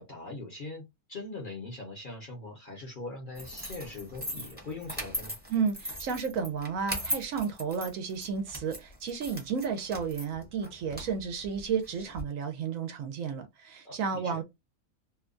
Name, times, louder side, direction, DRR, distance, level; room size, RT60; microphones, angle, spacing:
voice 1, 0.0-5.4 13.8-14.4, left 2 dB, 45° left, 0.7 m, -41 dB
sound 1, 3.3-12.2, equal, 10° right, 0.7 m, -39 dB
voice 2, 5.5-14.4, right 6 dB, 70° right, 0.9 m, -32 dB
2.7 x 2.2 x 2.4 m
omnidirectional pair, 1.6 m